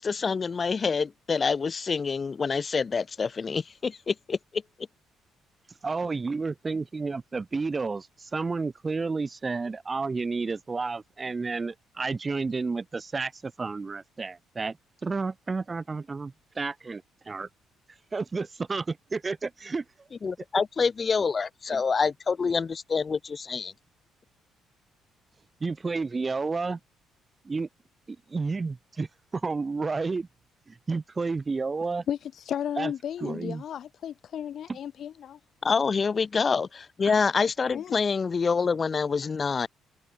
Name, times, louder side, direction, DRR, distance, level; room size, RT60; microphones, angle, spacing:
voice 1, 0.0-4.6 20.2-23.7 35.6-39.7, left 5 dB, 35° left, 0.8 m, -26 dB
voice 2, 5.8-14.8 15.0-17.5 18.1-19.8 21.7-21.8 25.6-26.8 27.4-27.7 28.1-30.3 30.7-32.1 32.8-32.9 33.2-33.6 34.7-34.8, right 4 dB, 30° right, 0.8 m, -31 dB
voice 3, 32.1-35.4 37.7-37.9, left 9 dB, 60° left, 0.3 m, -34 dB
cardioid pair, 85°, 0 cm